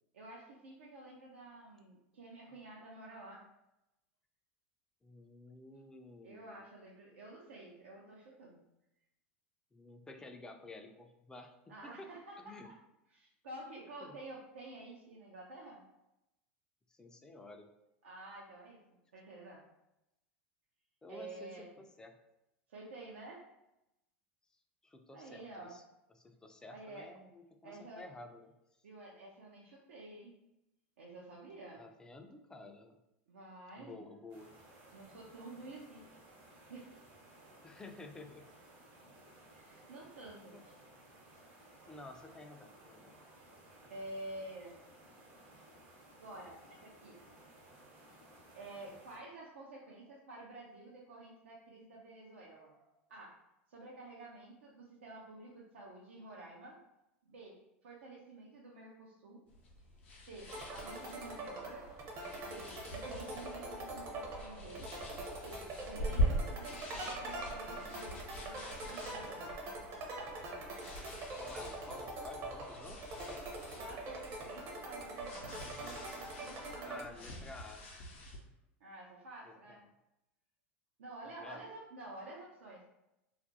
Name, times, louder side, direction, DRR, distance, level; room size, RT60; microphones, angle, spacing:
voice 1, 0.1-3.5 6.2-8.6 11.7-12.7 13.1-15.8 18.0-19.6 21.1-21.7 22.7-23.5 25.1-25.8 26.7-27.1 27.6-28.1 28.8-30.3 31.0-31.8 33.3-34.1 34.8-36.0 36.4-37.1 39.5-40.8 41.7-41.9 43.1-43.4 43.9-44.8 45.6-45.8 46.2-47.2 48.2-53.4 53.7-56.8 57.2-59.4 60.2-61.9 62.4-64.9 65.4-69.5 73.8-77.4 78.8-79.8 81.0-82.9, right 2 dB, 85° right, -4 dB, 0.4 m, -50 dB
voice 2, 5.0-6.6 9.7-12.1 12.4-12.7 14.0-14.2 16.9-17.7 21.0-22.2 24.8-25.8 26.2-28.5 31.7-33.0 33.8-34.6 37.6-38.5 40.5-40.6 41.9-43.2 71.4-73.4 76.8-77.8 79.4-79.8 81.2-81.6, left 2 dB, 10° left, 5 dB, 0.3 m, -52 dB
sound 1, 34.3-49.2, right 1 dB, 65° right, 0.9 m, -59 dB
sound 2, 59.5-78.4, equal, 75° left, 0.6 m, -43 dB
sound 3, 60.5-77.0, right 2 dB, 45° right, 0.7 m, -44 dB
2.4 x 2.1 x 2.6 m, 0.90 s
hypercardioid pair, 95°, 6 cm